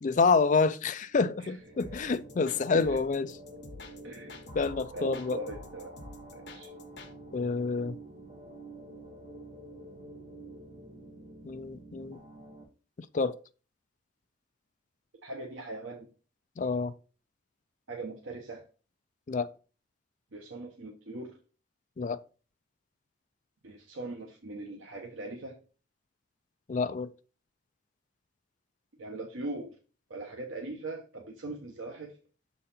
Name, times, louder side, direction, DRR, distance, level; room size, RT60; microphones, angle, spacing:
voice 1, 0.0-3.4 4.5-5.4 7.3-8.0 11.4-12.2 13.1-13.4 16.6-16.9 19.3-19.5 22.0-22.2 26.7-27.1, left 4 dB, 40° left, 0.4 m, -28 dB
sound 1, 1.1-12.6, right 1 dB, 35° right, 1.3 m, -48 dB
voice 2, 1.4-1.9 2.7-3.0 4.0-4.4 4.9-5.9 6.3-6.7 15.2-16.1 17.9-18.6 20.3-21.3 23.6-25.5 29.0-29.7 30.1-32.1, right 2 dB, 85° right, 1.0 m, -40 dB
sound 2, 1.8-7.1, left 2 dB, 60° left, 1.1 m, -48 dB
6.5 x 4.0 x 4.1 m
head